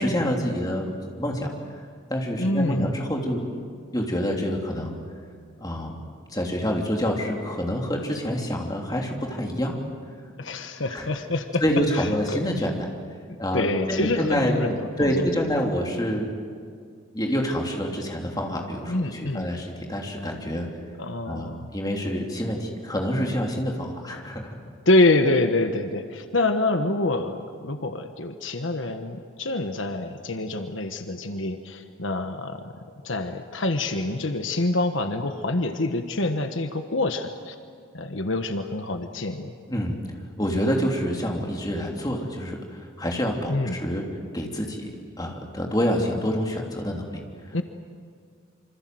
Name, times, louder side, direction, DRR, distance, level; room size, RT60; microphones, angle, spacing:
voice 1, 0.0-1.5 2.1-3.4 3.9-5.0 5.6-6.0 6.3-9.8 10.9-11.1 11.6-12.9 13.4-14.6 15.0-16.3 17.1-20.7 21.2-24.5 39.7-40.0 40.4-44.0 44.3-44.9 45.2-47.2, equal, 20° left, 1 dB, 3.2 m, -27 dB
voice 2, 2.4-2.9 10.4-11.6 11.9-12.4 13.5-15.3 18.9-19.5 21.0-21.7 24.8-32.7 33.0-37.6 37.9-39.5 43.5-43.8 47.5-47.6, left 2 dB, 70° left, 7 dB, 1.3 m, -26 dB
27.0 x 25.5 x 7.8 m, 2.2 s
head